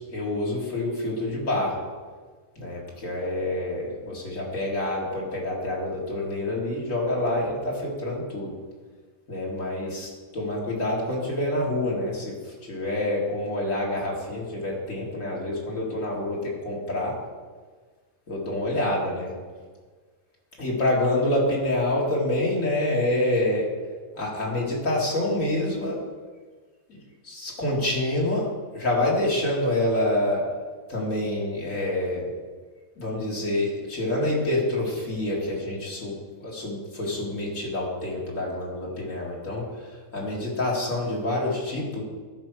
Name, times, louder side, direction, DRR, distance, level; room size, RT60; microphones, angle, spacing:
voice 1, 0.1-1.8 2.6-8.5 9.3-17.1 18.3-19.3 20.6-23.7 24.1-26.0 26.9-28.5 28.7-30.4 30.9-32.3 33.0-42.0, left 1 dB, 70° left, -4 dB, 2.6 m, -27 dB
13.0 x 4.6 x 6.2 m, 1.5 s
omnidirectional pair, 1.4 m